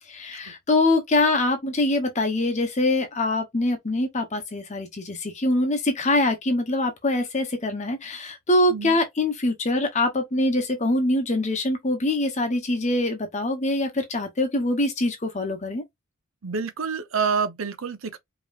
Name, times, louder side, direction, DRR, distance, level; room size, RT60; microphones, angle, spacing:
voice 1, 0.1-15.8, left 2 dB, 35° left, 0.9 m, -24 dB
voice 2, 16.4-18.2, right 5 dB, 85° right, 0.7 m, -27 dB
5.2 x 3.0 x 2.4 m
head